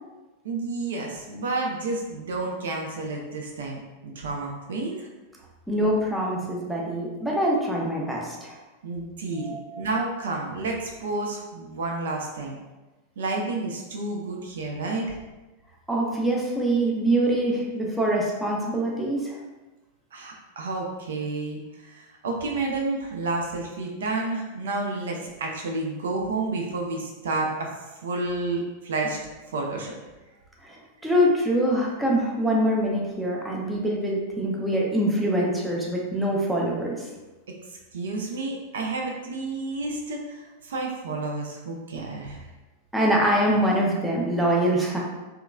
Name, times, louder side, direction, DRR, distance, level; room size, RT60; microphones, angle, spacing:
voice 1, 0.4-5.1 8.8-12.6 13.2-15.2 20.1-27.7 28.0-29.2 29.5-29.9 37.9-42.5, right 3 dB, 60° right, 0 dB, 0.4 m, -30 dB
voice 2, 5.7-8.6 9.4-9.8 15.9-19.4 30.6-30.8 31.0-37.1 42.9-45.0, right 1 dB, 5° right, -3 dB, 0.5 m, -24 dB
2.8 x 2.3 x 2.3 m, 1.1 s
figure-of-eight pair, 90°, 0 cm